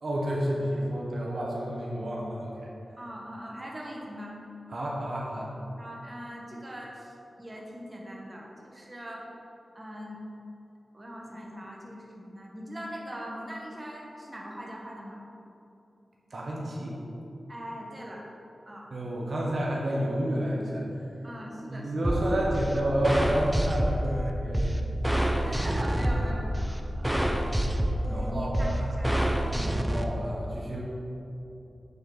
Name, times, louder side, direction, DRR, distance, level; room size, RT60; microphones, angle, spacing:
voice 1, 0.0-2.7 4.7-5.5 16.3-17.0 18.9-20.8 21.7-24.7 28.1-28.9 29.9-30.8, right 1 dB, 65° right, -3 dB, 1.2 m, -30 dB
voice 2, 3.0-4.4 5.8-9.3 9.7-10.2 10.9-15.2 17.5-18.3 18.6-18.9 21.2-22.1 25.1-27.1 28.0-29.1 29.5-29.8, equal, 25° right, -2 dB, 1.4 m, -41 dB
sound 1, 22.0-30.0, right 1 dB, 10° right, 0.7 m, -27 dB
8.6 x 4.6 x 5.0 m, 2.8 s
cardioid pair, 65°, 0 cm